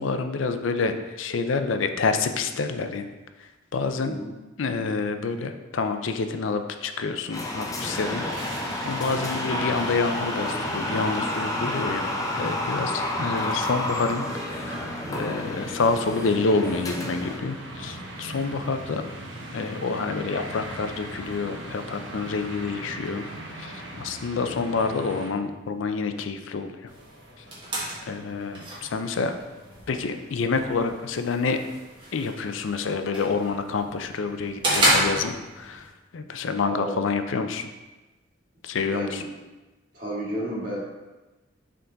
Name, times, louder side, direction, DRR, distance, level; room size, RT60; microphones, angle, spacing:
voice 1, 0.0-3.0 3.7-4.1 4.6-12.0 12.3-14.2 14.5-19.0 19.5-23.2 23.6-26.8 28.1-29.3 29.9-31.6 32.1-37.7 38.6-39.2, left 4 dB, 85° left, 8 dB, 0.5 m, -28 dB
sound 1, 7.3-17.4, left 1 dB, 15° left, 0.5 m, -30 dB
sound 2, 7.8-25.3, right 1 dB, 75° right, 0.9 m, -38 dB
sound 3, 26.9-35.9, right 1 dB, 25° right, 1.4 m, -30 dB
voice 2, 36.7-37.0 38.9-39.2 39.9-40.8, equal, 45° right, -5 dB, 1.8 m, -31 dB
6.8 x 3.7 x 3.9 m, 1.1 s
head